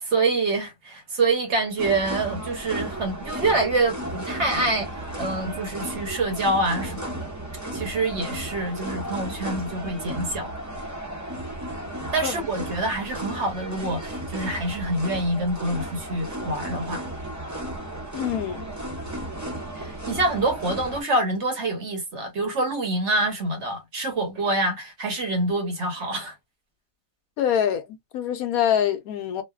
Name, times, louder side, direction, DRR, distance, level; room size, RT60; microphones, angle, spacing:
voice 1, 0.0-7.0 7.7-10.5 12.1-17.0 19.7-26.3, right 2 dB, 55° right, 1.0 m, -26 dB
sound 1, 1.8-21.0, right 1 dB, 20° right, 0.5 m, -34 dB
voice 2, 18.1-18.7 27.4-29.4, left 9 dB, 75° left, 1.0 m, -25 dB
3.1 x 2.1 x 2.2 m
omnidirectional pair, 1.6 m